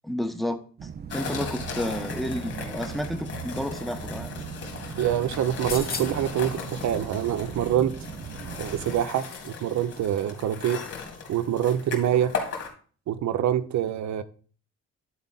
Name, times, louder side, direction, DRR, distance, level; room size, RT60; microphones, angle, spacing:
voice 1, 0.0-4.3, left 1 dB, ahead, 1.0 m, -31 dB
sound 1, 0.8-9.0, right 7 dB, 35° right, 0.5 m, -39 dB
sound 2, 1.1-12.7, left 5 dB, 55° left, 2.7 m, -37 dB
voice 2, 5.0-7.9 8.6-10.8 11.3-12.3 13.1-14.2, right 10 dB, 65° right, 0.8 m, -25 dB
sound 3, 5.6-6.4 7.9-9.6 9.9-10.0, left 5 dB, 30° left, 1.1 m, -39 dB
11.0 x 4.1 x 4.0 m
cardioid pair, 90°, 30 cm